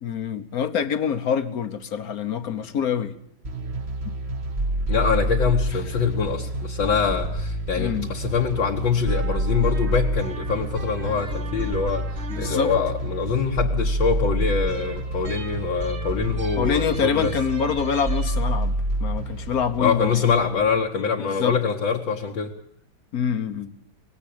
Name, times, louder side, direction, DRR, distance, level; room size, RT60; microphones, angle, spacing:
voice 1, 0.0-3.1 4.0-4.1 7.8-8.1 12.3-12.7 16.5-20.2 21.2-21.6 23.1-23.7, left 7 dB, 55° left, 1.3 m, -26 dB
sound 1, 3.4-20.8, right 1 dB, 35° right, 1.5 m, -28 dB
voice 2, 4.9-17.4 19.8-22.5, left 6 dB, 70° left, 1.9 m, -24 dB
19.0 x 17.0 x 8.6 m
omnidirectional pair, 2.2 m